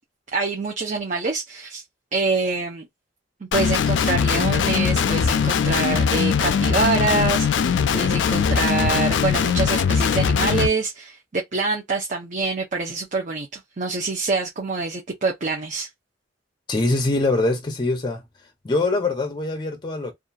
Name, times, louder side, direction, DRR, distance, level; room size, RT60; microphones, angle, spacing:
voice 1, 0.3-1.8 2.1-2.9 3.4-15.9, right 3 dB, 45° right, 0.7 m, -25 dB
Guitar, 3.5-10.7, left 6 dB, 85° left, 0.4 m, -21 dB
voice 2, 16.7-18.2 18.6-20.1, left 2 dB, 25° left, 0.5 m, -23 dB
2.7 x 2.4 x 2.2 m
head